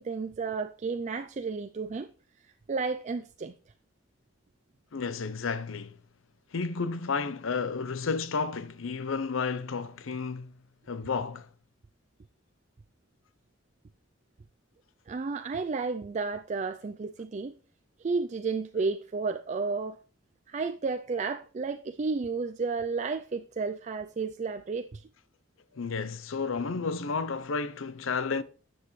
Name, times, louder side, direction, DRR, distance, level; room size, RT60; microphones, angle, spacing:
voice 1, 0.0-2.1 2.7-3.5 15.1-17.5 18.0-20.0 20.5-25.1, right 4 dB, 35° right, 0.4 m, -32 dB
voice 2, 4.9-6.0 6.5-10.5 10.9-11.5 25.7-28.4, left 4 dB, 80° left, 0.7 m, -32 dB
13.0 x 7.8 x 3.2 m
head